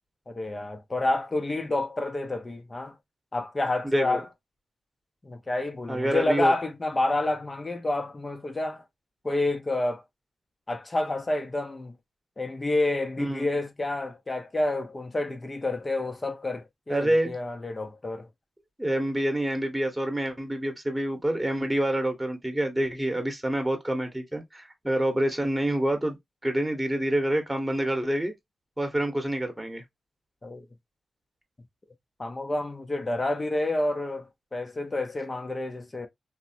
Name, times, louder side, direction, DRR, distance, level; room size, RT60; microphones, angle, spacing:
voice 1, 0.3-2.9 3.3-4.3 5.2-8.8 9.2-10.0 10.7-11.9 12.4-18.3 30.4-30.7 32.2-36.1, left 2 dB, 30° left, 0.6 m, -29 dB
voice 2, 3.8-4.2 5.9-6.5 13.2-13.5 16.9-17.3 18.8-26.2 26.4-28.3 28.8-29.8, right 1 dB, 10° right, 1.0 m, -27 dB
3.0 x 2.1 x 2.7 m
cardioid pair, 60°, 0 cm